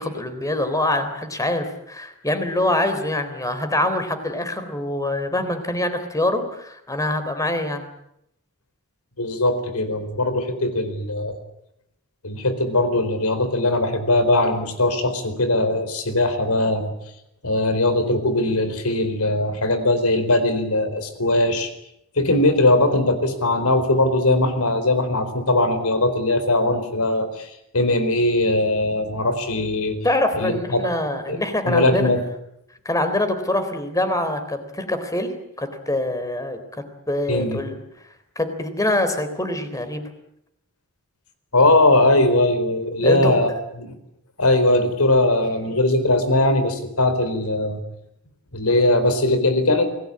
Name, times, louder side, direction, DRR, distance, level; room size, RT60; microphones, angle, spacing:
voice 1, 0.0-7.9 30.0-32.1 32.9-36.6 37.1-37.8 38.4-40.1 43.0-43.6, left 1 dB, 15° left, 9 dB, 3.7 m, -24 dB
voice 2, 9.2-11.4 12.2-16.9 17.4-21.7 22.2-30.0 30.4-30.8 31.3-31.4 31.7-32.2 37.3-37.6 41.5-43.5 43.8-43.9 44.4-47.8 48.5-49.9, left 2 dB, 75° left, 11 dB, 4.2 m, -20 dB
28.5 x 19.5 x 8.7 m, 0.78 s
head